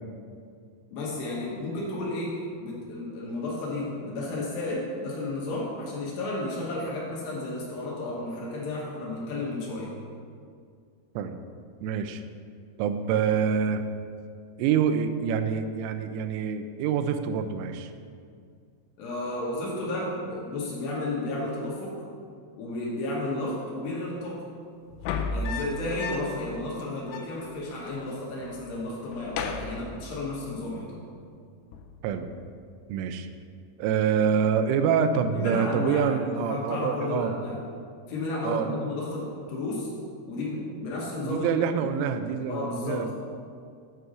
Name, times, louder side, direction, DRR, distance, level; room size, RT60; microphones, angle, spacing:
voice 1, 0.9-10.0 19.0-22.0 22.6-24.4 25.3-31.1 35.3-37.6 38.1-39.9 40.3-41.6 42.5-43.1, left 2 dB, 70° left, -5 dB, 3.0 m, -32 dB
voice 2, 11.8-12.2 12.8-13.8 14.6-17.9 32.0-32.3 32.9-33.3 33.8-37.3 38.4-38.8 41.3-43.1, right 7 dB, 85° right, 8 dB, 3.0 m, -26 dB
sound 1, 24.9-26.5 26.8-26.9 27.1-28.1 28.4-28.7 29.1-30.5 31.7-32.1, left 3 dB, 85° left, 3.2 m, -34 dB
9.3 x 4.7 x 6.2 m, 2.2 s
omnidirectional pair, 5.9 m